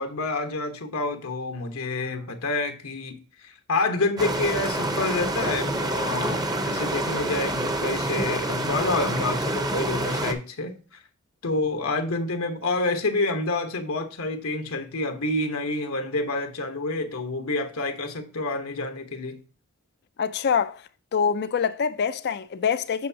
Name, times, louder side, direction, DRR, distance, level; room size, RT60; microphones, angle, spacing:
voice 1, 0.0-10.7 11.4-19.4, left 3 dB, 85° left, 1.1 m, -28 dB
sound 1, 4.2-10.3, right 1 dB, 20° right, 0.8 m, -27 dB
voice 2, 20.2-20.8 21.1-23.1, left 6 dB, 50° left, 0.4 m, -25 dB
7.7 x 6.3 x 2.8 m
head